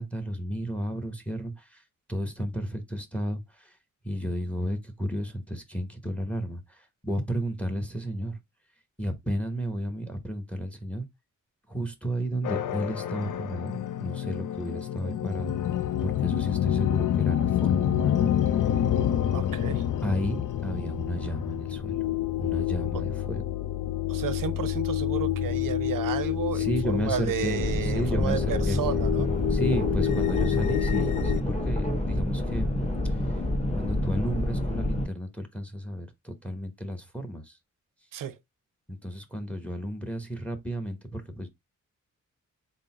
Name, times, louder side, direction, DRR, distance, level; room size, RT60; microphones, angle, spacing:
voice 1, 0.0-1.8 2.1-3.7 4.0-8.3 9.0-11.0 11.7-15.6 16.0-18.3 20.0-21.9 22.4-23.4 26.5-28.8 29.5-32.7 33.7-37.6 38.9-41.5, equal, 5° left, 0.9 m, -32 dB
sound 1, 12.4-31.4, left 11 dB, 70° left, 0.5 m, -28 dB
voice 2, 19.3-19.9 22.9-23.0 24.1-29.3 38.1-38.4, right 10 dB, 85° right, 0.6 m, -32 dB
sound 2, 27.4-35.1, left 1 dB, 20° left, 1.2 m, -28 dB
3.8 x 2.1 x 4.3 m
wide cardioid pair, 85°, 32 cm